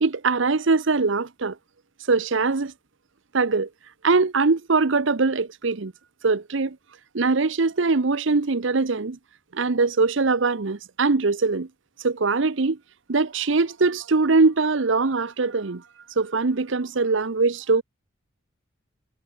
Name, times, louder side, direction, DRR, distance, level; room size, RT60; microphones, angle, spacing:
voice 1, 0.0-1.6 2.1-2.7 3.3-3.7 4.0-5.9 6.2-6.8 7.1-9.2 9.5-11.7 12.0-12.8 13.1-15.8 16.2-17.8, right 3 dB, 70° right, 0.8 m, -22 dB
head